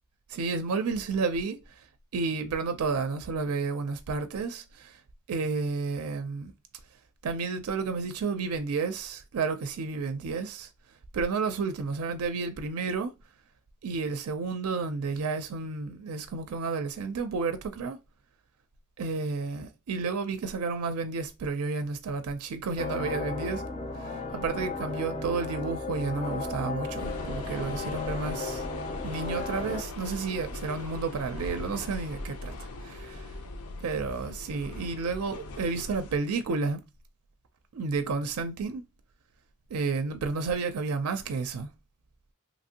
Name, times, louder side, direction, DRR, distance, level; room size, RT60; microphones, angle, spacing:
voice 1, 0.3-1.6 2.1-5.0 5.3-6.5 7.2-10.7 11.1-13.2 13.8-18.0 19.0-23.6 23.9-28.6 29.0-33.3 33.8-36.8 37.7-38.9 39.7-41.7, right 4 dB, 80° right, 0.4 m, -31 dB
sound 1, 22.8-29.8, left 3 dB, 30° left, 0.4 m, -35 dB
sound 2, 27.0-36.2, left 2 dB, 80° left, 0.5 m, -39 dB
3.0 x 2.5 x 2.7 m
head